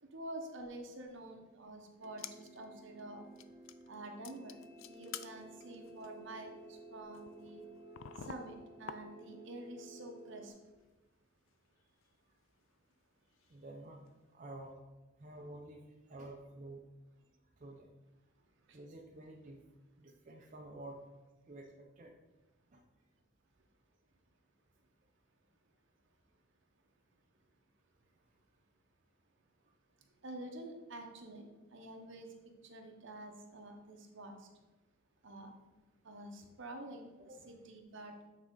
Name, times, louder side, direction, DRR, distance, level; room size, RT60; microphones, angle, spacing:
voice 1, 0.0-3.2 3.9-4.6 4.9-7.6 8.2-10.5 18.7-18.8 30.2-32.3 32.6-34.5 35.2-35.5 36.0-37.1 37.5-38.1, right 1 dB, 60° right, 4 dB, 0.9 m, -48 dB
sound 1, 2.0-2.6 3.0-3.1 3.4-3.9 4.2-9.5 9.8-10.5 10.8-10.9 11.5-13.7 14.1-14.2, left 9 dB, 65° left, 0.3 m, -51 dB
sound 2, 2.0-10.5, right 1 dB, 15° right, 0.9 m, -55 dB
voice 2, 13.5-14.7 15.2-15.8 16.1-16.8 17.6-17.9 18.7-19.6 20.0-21.0 21.5-22.2 22.7-22.8 37.3-37.5, right 1 dB, 40° right, 0 dB, 0.5 m, -50 dB
8.4 x 3.6 x 3.8 m, 1.2 s
head